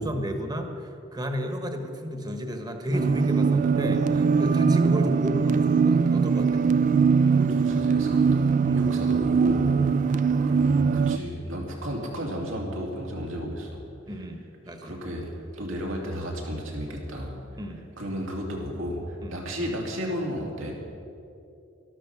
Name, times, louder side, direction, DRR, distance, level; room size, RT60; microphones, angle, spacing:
voice 1, 0.0-6.6 8.7-8.9 14.1-14.9 17.6-17.8 19.2-19.4, equal, 20° right, 5 dB, 1.2 m, -33 dB
sound 1, 2.9-11.2, right 5 dB, 40° right, 0.3 m, -22 dB
voice 2, 7.3-13.8 14.8-17.4 18.0-20.7, equal, 90° right, -1 dB, 2.7 m, -33 dB
13.0 x 12.5 x 6.0 m, 2.7 s
head